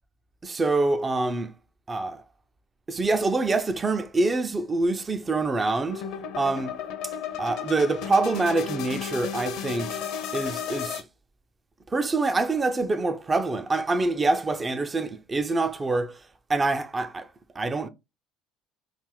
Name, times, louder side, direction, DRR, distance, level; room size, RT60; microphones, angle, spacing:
voice 1, 0.4-1.5 1.9-2.2 2.9-6.1 6.4-6.7 7.4-10.0 10.3-11.0 11.9-16.2 16.5-17.3 17.6-17.9, right 3 dB, 25° right, 0.5 m, -25 dB
sound 1, 5.9-11.0, left 7 dB, 60° left, 0.6 m, -33 dB
3.3 x 2.6 x 3.6 m
figure-of-eight pair, 60°, 0 cm